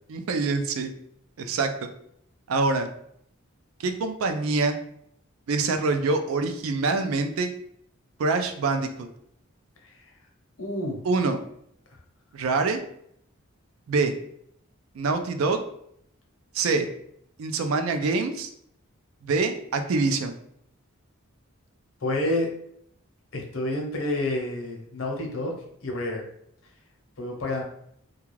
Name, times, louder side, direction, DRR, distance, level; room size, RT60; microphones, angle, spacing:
voice 1, 0.1-0.9 1.4-1.9 2.5-2.9 3.8-4.8 5.5-7.5 8.2-9.1 11.0-11.4 12.3-12.8 13.9-14.1 15.0-15.6 16.5-16.9 17.4-18.5 19.2-20.3, right 3 dB, 80° right, 7 dB, 0.4 m, -25 dB
voice 2, 10.6-11.0 22.0-22.5 23.3-25.5 25.8-26.2 27.2-27.6, left 1 dB, 70° left, 0 dB, 0.7 m, -29 dB
2.3 x 2.3 x 3.1 m, 0.70 s
head